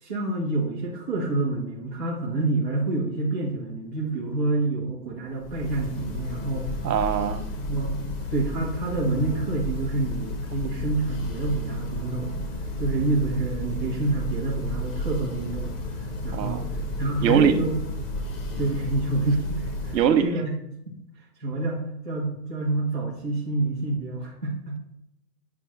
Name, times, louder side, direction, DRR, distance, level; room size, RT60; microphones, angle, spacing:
voice 1, 0.0-6.7 7.7-8.0 8.3-12.4 12.8-17.8 18.5-20.5 20.9-21.0 21.4-24.8, right 2 dB, 10° left, -4 dB, 0.4 m, -28 dB
Church bell, 5.3-20.3, left 1 dB, 35° left, 0.8 m, -32 dB
voice 2, 6.8-7.4 16.3-16.6 17.2-17.5 19.9-20.3, right 8 dB, 90° right, 10 dB, 0.8 m, -21 dB
7.4 x 2.5 x 5.8 m, 0.81 s
hypercardioid pair, 150°, 49 cm